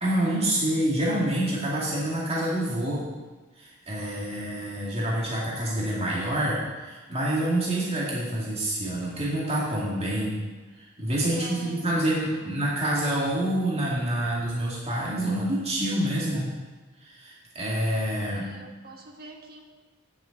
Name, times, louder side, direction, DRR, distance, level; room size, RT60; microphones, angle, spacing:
voice 1, 0.0-3.1 3.6-10.4 10.8-16.5 17.0-18.5, right 1 dB, 30° right, -5 dB, 2.2 m, -27 dB
voice 2, 11.3-12.1 12.4-12.5 18.3-19.6, right 2 dB, 45° right, 3 dB, 1.5 m, -45 dB
8.7 x 6.7 x 8.4 m, 1.3 s
head